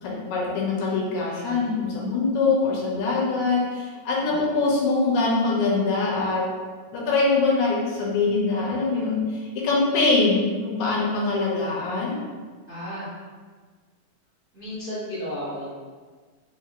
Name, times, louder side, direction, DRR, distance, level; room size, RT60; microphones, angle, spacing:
voice 1, 0.0-6.4 6.9-9.2 9.6-12.2, left 3 dB, 85° left, -4 dB, 2.2 m, -23 dB
voice 2, 1.3-1.8 4.2-4.5 12.7-13.1 14.5-15.7, equal, 55° right, -12 dB, 0.6 m, -34 dB
5.0 x 2.9 x 2.5 m, 1.5 s
omnidirectional pair, 3.3 m